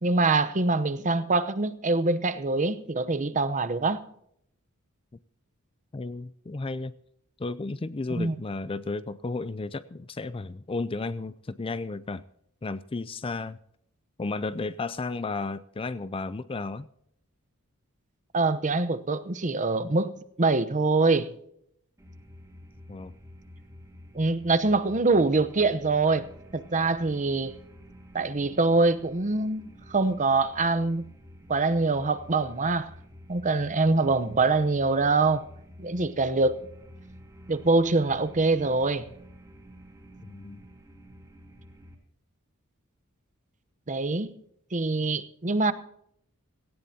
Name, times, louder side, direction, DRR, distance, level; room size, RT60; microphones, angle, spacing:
voice 1, 0.0-4.0 8.2-8.3 18.3-21.3 24.1-26.3 26.5-27.5 28.1-31.0 31.5-32.9 33.3-35.4 35.8-36.6 37.5-39.0 43.9-44.3 44.7-45.7, right 3 dB, 35° right, 0.8 m, -24 dB
voice 2, 5.9-6.9 7.4-12.2 12.6-13.6 14.2-16.9 22.9-23.1 40.2-40.6, left 3 dB, 25° left, 0.4 m, -33 dB
sound 1, 22.0-41.9, equal, 15° right, 2.9 m, -49 dB
17.5 x 16.5 x 2.8 m
head